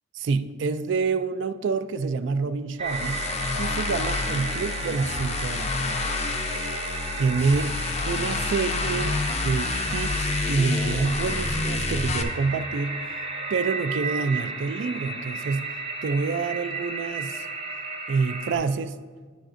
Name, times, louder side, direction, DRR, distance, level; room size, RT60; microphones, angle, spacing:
voice 1, 0.2-3.2 3.6-6.1 7.2-7.8 8.1-9.2 9.4-13.0 13.5-15.8 16.0-17.5 18.1-19.0, right 4 dB, 60° right, 0.3 m, -27 dB
sound 1, 2.8-18.5, right 3 dB, 30° right, 0.7 m, -33 dB
sound 2, 2.9-12.2, left 3 dB, 30° left, 0.4 m, -29 dB
9.9 x 7.3 x 2.5 m
head